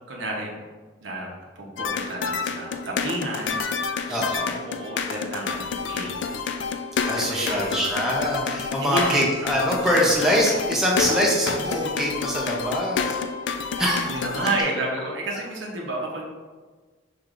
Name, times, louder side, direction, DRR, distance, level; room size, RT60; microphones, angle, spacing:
voice 1, 0.1-0.6 1.0-6.4 7.1-7.9 8.8-9.3 13.8-16.3, right 2 dB, 85° right, -1 dB, 0.9 m, -31 dB
sound 1, 1.8-14.6, left 5 dB, 70° left, 0.3 m, -29 dB
voice 2, 4.1-4.6 7.0-13.2 13.8-14.2, equal, 5° right, -4 dB, 0.7 m, -24 dB
6.5 x 3.0 x 2.5 m, 1.4 s
head